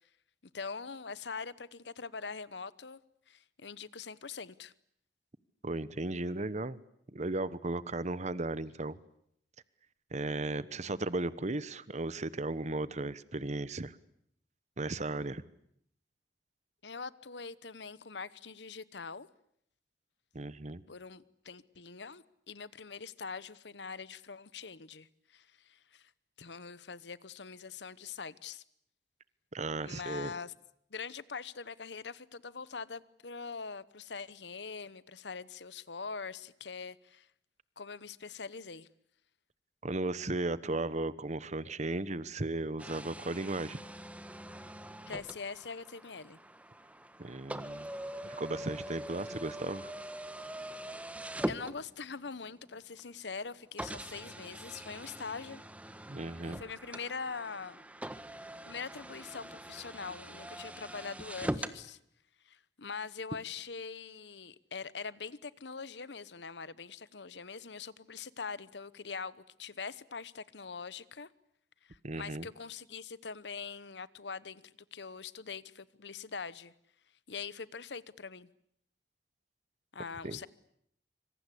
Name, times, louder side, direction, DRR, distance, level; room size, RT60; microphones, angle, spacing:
voice 1, 0.5-3.0 3.3-4.7 16.8-19.3 20.9-26.1 26.4-28.6 29.8-30.5 30.9-37.3 37.8-38.9 45.1-46.4 51.4-55.6 56.4-57.8 58.7-62.0 62.4-71.3 71.8-76.7 77.3-78.5 79.9-80.5, left 5 dB, 75° left, 1.0 m, -43 dB
voice 2, 5.6-6.8 7.1-9.0 10.1-14.0 14.8-15.4 20.3-20.8 29.5-30.3 39.8-43.8 47.2-47.9 48.2-49.9 56.1-56.6 72.0-72.5 80.2-80.4, right 2 dB, 40° right, 1.1 m, -35 dB
sound 1, 42.8-52.3 53.0-53.1 53.8-61.8, right 1 dB, 10° right, 1.3 m, -42 dB
26.0 x 25.5 x 8.4 m
head